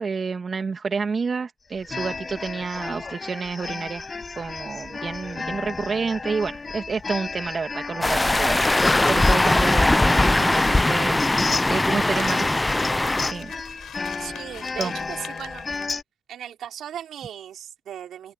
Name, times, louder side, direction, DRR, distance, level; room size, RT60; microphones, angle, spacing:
voice 1, 0.0-4.1 4.4-11.2 11.7-12.8 13.3-13.5 14.8-14.9, right 5 dB, 45° right, 2.8 m, -29 dB
sound 1, 1.8-16.0, left 4 dB, 35° left, 6.3 m, -33 dB
sound 2, 8.0-13.3, left 2 dB, 15° left, 0.9 m, -20 dB
sound 3, 10.6-15.9, left 11 dB, 75° left, 6.5 m, -44 dB
voice 2, 14.2-15.7 16.3-18.3, right 10 dB, 70° right, 4.6 m, -37 dB
supercardioid pair, 60°, 0 cm